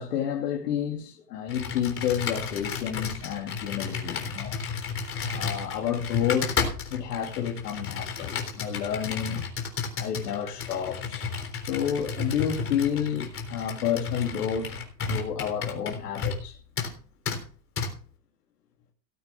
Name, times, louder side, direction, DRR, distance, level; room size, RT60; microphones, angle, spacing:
voice 1, 0.0-4.6 5.2-6.5 6.9-9.4 10.0-11.3 11.7-14.8 15.1-16.6, left 8 dB, 70° left, 2.7 m, -30 dB
Computer keyboard, 1.5-16.5 16.8-16.9 17.3-17.4 17.8-17.9, left 6 dB, 25° left, 3.6 m, -33 dB
18.0 x 8.8 x 3.7 m
hypercardioid pair, 110°, 48 cm